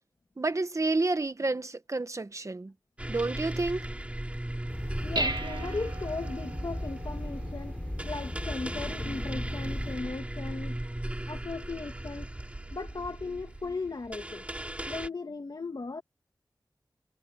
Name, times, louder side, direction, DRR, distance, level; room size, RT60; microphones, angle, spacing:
voice 1, 0.4-2.7 3.1-3.8, right 2 dB, 45° right, 1.4 m, -29 dB
sound 1, 3.0-15.1, right 1 dB, 15° right, 3.7 m, -38 dB
Dishes pots and pans, 4.5-13.7, right 2 dB, 70° right, 1.7 m, -41 dB
sound 2, 4.7-10.0, left 1 dB, 15° left, 3.3 m, -37 dB
voice 2, 5.0-10.8 11.3-12.3 12.7-14.4 14.9-16.0, left 3 dB, 65° left, 2.6 m, -37 dB
wide cardioid pair, 60°, 8 cm